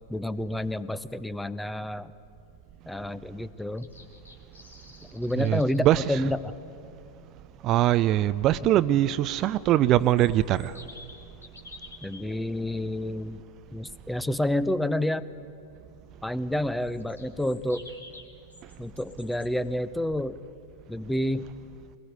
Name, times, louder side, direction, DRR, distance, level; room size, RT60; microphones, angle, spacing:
voice 1, 0.1-2.1 2.9-3.9 5.1-6.5 8.6-8.7 12.0-13.4 13.7-15.2 16.2-17.8 18.8-20.4 20.9-21.5, left 1 dB, 5° left, 0.7 m, -29 dB
sound 1, 3.6-6.0 9.8-12.2 16.8-19.5, left 2 dB, 80° left, 2.2 m, -50 dB
voice 2, 5.4-6.0 7.6-10.7, right 13 dB, 35° right, 0.5 m, -22 dB
23.5 x 20.0 x 9.4 m
figure-of-eight pair, 90°, 0 cm